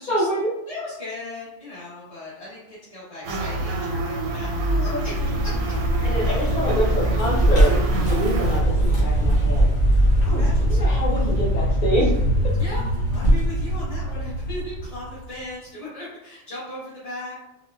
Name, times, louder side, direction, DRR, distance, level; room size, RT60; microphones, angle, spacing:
voice 1, 0.1-0.5 4.7-5.3 6.0-9.7 10.3-12.1, equal, 50° left, -6 dB, 0.5 m, -26 dB
voice 2, 0.7-4.5 4.7-5.1 6.3-6.5 10.2-11.0 12.5-12.8 13.1-17.4, left 1 dB, 30° left, -12 dB, 1.0 m, -37 dB
sound 1, 3.2-8.6, right 1 dB, 85° right, 1.0 m, -27 dB
Vehicle, 5.0-15.3, right 1 dB, 75° left, 1.6 m, -21 dB
4.0 x 2.1 x 2.3 m, 0.90 s
omnidirectional pair, 1.4 m